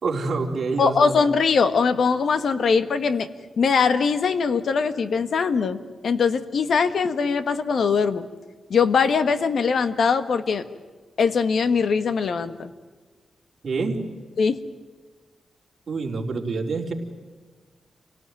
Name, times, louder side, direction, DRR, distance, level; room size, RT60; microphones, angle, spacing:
voice 1, 0.0-1.1 13.6-14.0 15.9-16.9, right 4 dB, 45° right, 0 dB, 3.9 m, -26 dB
voice 2, 0.8-3.3 3.6-8.3 8.7-10.6 11.2-12.7 14.4-14.6, left 5 dB, 65° left, 11 dB, 1.5 m, -21 dB
28.0 x 18.0 x 9.4 m, 1.4 s
wide cardioid pair, 160°, 0 cm